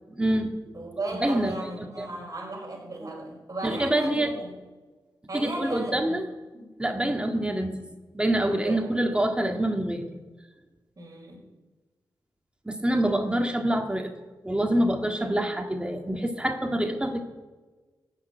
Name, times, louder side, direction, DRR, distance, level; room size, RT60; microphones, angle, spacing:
voice 1, 0.2-0.5 1.2-1.5 2.0-2.1 3.6-4.3 5.3-6.2 6.8-7.8 8.1-10.1 12.7-14.1 14.4-17.2, right 1 dB, 10° right, 3 dB, 1.9 m, -26 dB
voice 2, 0.7-4.6 5.3-6.2 6.5-7.0 8.5-8.9 11.0-11.5, right 2 dB, 45° right, 0 dB, 5.4 m, -35 dB
15.0 x 6.7 x 9.4 m, 1.3 s
cardioid pair, 65°, 8 cm